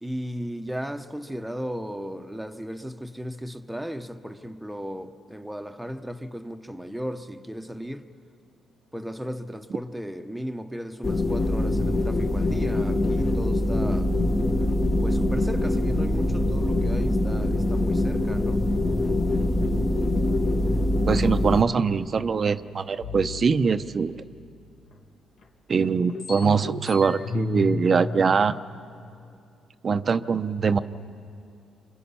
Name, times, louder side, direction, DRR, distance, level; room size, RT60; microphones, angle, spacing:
voice 1, 0.0-8.1 8.9-14.1 15.0-18.6, equal, ahead, 1.0 m, -35 dB
sound 1, 11.0-21.6, left 1 dB, 30° left, 1.5 m, -23 dB
voice 2, 21.1-24.2 25.7-28.6 29.8-30.8, right 5 dB, 40° right, 0.7 m, -23 dB
sound 2, 23.0-24.9 25.4-25.5 25.8-29.3, left 3 dB, 80° left, 2.2 m, -35 dB
28.5 x 25.5 x 5.6 m
cardioid pair, 90°, 0 cm